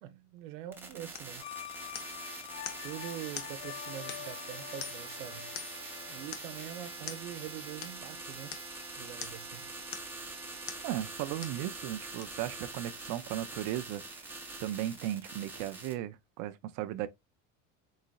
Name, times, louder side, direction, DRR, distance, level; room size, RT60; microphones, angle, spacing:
voice 1, 0.0-1.5 2.8-5.6 6.1-8.6 8.9-9.8, right 12 dB, 85° right, 0.8 m, -44 dB
sound 1, 0.7-15.9, right 3 dB, 5° right, 0.7 m, -44 dB
sound 2, 1.1-1.4 1.9-2.2 2.6-2.9 3.3-3.6 4.1-4.4 4.8-5.1 5.5-5.9 6.3-6.6 7.1-7.3 7.8-8.0 8.5-8.7 9.2-9.5 9.9-10.2 10.7-10.9 11.4-11.6 12.2-12.3, left 8 dB, 50° left, 0.8 m, -44 dB
sound 3, 1.4-7.3, left 12 dB, 75° left, 0.6 m, -46 dB
voice 2, 10.8-14.3 14.6-17.1, right 13 dB, 50° right, 0.5 m, -36 dB
4.0 x 3.9 x 2.2 m
cardioid pair, 150°, 38 cm